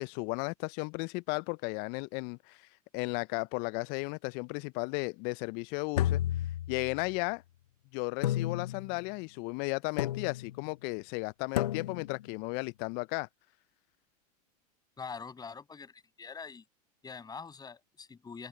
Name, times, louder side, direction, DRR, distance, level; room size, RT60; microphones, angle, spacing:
voice 1, 0.0-2.7 2.9-6.2 6.7-7.4 7.9-13.3, left 31 dB, 50° left, 0.8 m, -35 dB
sound 1, 5.9-7.2 8.2-9.0 10.0-10.6 11.6-12.2, left 12 dB, 70° left, 1.0 m, -32 dB
voice 2, 15.0-16.6 17.0-18.5, left 5 dB, 20° left, 7.7 m, -44 dB
hypercardioid pair, 90°, 21 cm